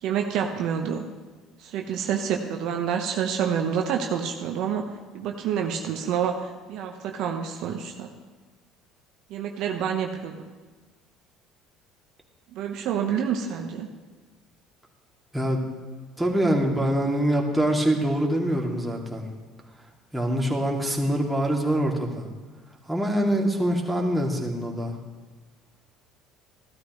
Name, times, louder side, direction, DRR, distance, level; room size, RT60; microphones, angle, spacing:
voice 1, 0.0-1.0 1.6-4.9 5.1-8.1 9.3-10.4 12.5-13.9, right 8 dB, 65° right, 3 dB, 1.0 m, -28 dB
voice 2, 15.3-15.6 16.2-19.2 20.1-22.3 22.9-25.0, right 1 dB, 5° right, -2 dB, 2.5 m, -24 dB
15.0 x 12.5 x 3.1 m, 1.4 s
hypercardioid pair, 65°, 0 cm